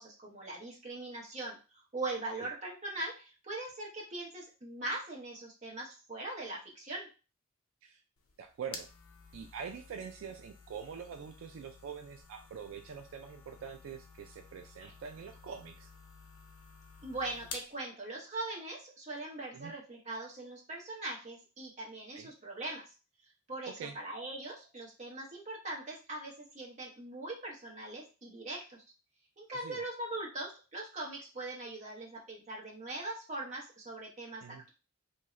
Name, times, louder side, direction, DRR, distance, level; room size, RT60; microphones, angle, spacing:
voice 1, 0.0-7.1 14.8-14.9 17.0-22.9 23.5-28.8 29.4-34.7, right 2 dB, 35° right, -3 dB, 0.9 m, -41 dB
sound 1, 8.2-17.8, left 4 dB, 85° left, 0.6 m, -52 dB
voice 2, 8.4-8.9 9.3-15.9 19.5-19.7 22.1-22.3 23.7-24.0 29.5-29.8 34.4-34.6, right 7 dB, 70° right, 5 dB, 0.3 m, -44 dB
2.7 x 2.4 x 3.1 m, 0.33 s
head